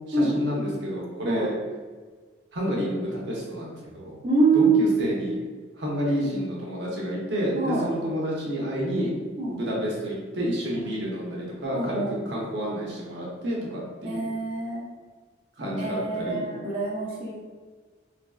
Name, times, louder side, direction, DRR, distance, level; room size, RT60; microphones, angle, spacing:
voice 1, 0.1-1.5 2.5-4.1 4.5-5.4 5.8-9.1 9.5-14.3 15.6-16.5, equal, 75° right, -4 dB, 0.7 m, -29 dB
voice 2, 4.2-4.9 7.5-7.9 9.4-9.7 10.7-11.0 11.7-12.3 14.0-14.8 15.8-17.3, right 3 dB, 30° right, -7 dB, 0.7 m, -25 dB
3.1 x 2.5 x 2.3 m, 1.4 s
head